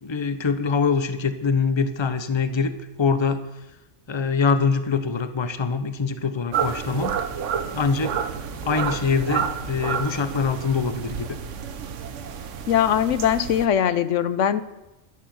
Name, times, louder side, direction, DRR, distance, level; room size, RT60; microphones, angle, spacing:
voice 1, 0.0-2.7 3.0-3.4 4.1-7.2 7.7-8.2 8.6-11.3, left 5 dB, 25° left, 11 dB, 0.8 m, -24 dB
sound 1, 6.5-13.7, right 7 dB, 75° right, 1.2 m, -30 dB
voice 2, 12.7-14.6, left 9 dB, 80° left, 14 dB, 1.0 m, -21 dB
12.0 x 10.5 x 7.8 m, 1.0 s
omnidirectional pair, 1.3 m